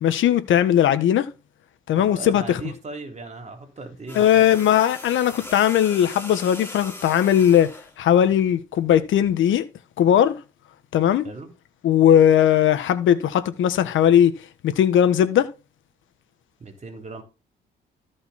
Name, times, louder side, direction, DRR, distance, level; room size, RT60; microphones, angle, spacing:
voice 1, 0.0-1.3 1.9-2.6 4.1-7.7 8.0-9.6 10.0-10.4 10.9-11.3 11.8-14.3 14.6-15.5, left 10 dB, 75° left, 1.3 m, -18 dB
voice 2, 2.0-4.5 11.2-11.5 16.6-17.2, right 3 dB, 35° right, 3.3 m, -38 dB
sound 1, 4.1-7.9 9.1-9.3, left 2 dB, 10° left, 4.1 m, -39 dB
13.5 x 5.4 x 4.2 m
cardioid pair, 90°, 20 cm